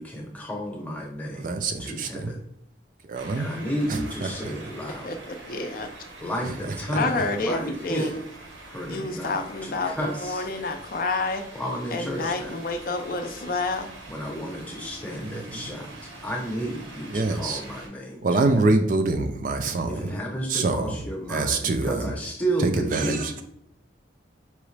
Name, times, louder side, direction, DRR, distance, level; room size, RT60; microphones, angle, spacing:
voice 1, 0.0-1.5 1.8-2.4 3.4-5.1 6.2-8.1 8.7-9.3 9.6-10.5 11.5-12.5 14.1-18.2 19.9-23.3, equal, 10° left, 0 dB, 0.8 m, -32 dB
voice 2, 1.3-2.3 3.0-3.5 3.9-4.7 6.4-7.0 8.0-8.1 15.2-15.7 17.1-17.6 18.2-20.2 20.5-21.0 21.3-22.1 22.6-23.4, right 3 dB, 45° right, 6 dB, 0.4 m, -26 dB
sound 1, 3.1-17.9, right 2 dB, 90° right, 1.0 m, -44 dB
voice 3, 5.0-5.9 6.9-8.2 8.9-11.5 11.9-13.9, left 3 dB, 50° left, 6 dB, 0.4 m, -29 dB
4.8 x 3.0 x 3.2 m, 0.72 s
head